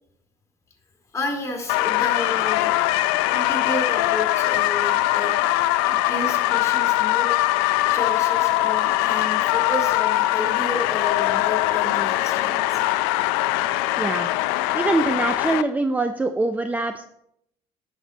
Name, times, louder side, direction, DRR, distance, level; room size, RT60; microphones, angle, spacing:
voice 1, 1.1-2.9 3.3-5.3 5.8-7.5 7.9-12.8, left 2 dB, 25° left, 1 dB, 2.4 m, -31 dB
sound 1, 1.7-15.6, left 16 dB, 85° left, 0.4 m, -22 dB
voice 2, 14.0-14.3 14.7-17.0, right 2 dB, 10° right, 8 dB, 0.5 m, -23 dB
10.0 x 6.3 x 4.0 m, 0.76 s
supercardioid pair, 85°, 13 cm